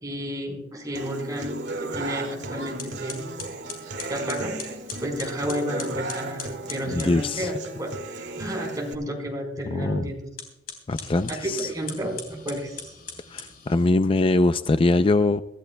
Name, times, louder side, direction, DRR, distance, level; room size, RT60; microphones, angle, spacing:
voice 1, 0.0-3.3 4.1-4.6 5.0-10.3 11.3-12.9, equal, 20° right, 1 dB, 4.1 m, -32 dB
Human voice / Acoustic guitar, 0.9-8.9, right 2 dB, 80° right, 1.7 m, -35 dB
sound 1, 2.8-7.2 10.3-13.9, left 6 dB, 55° left, 3.3 m, -40 dB
voice 2, 6.9-7.5 9.7-10.1 10.9-11.7 13.3-15.4, left 2 dB, 30° left, 11 dB, 0.4 m, -22 dB
24.0 x 13.5 x 2.2 m, 0.88 s
head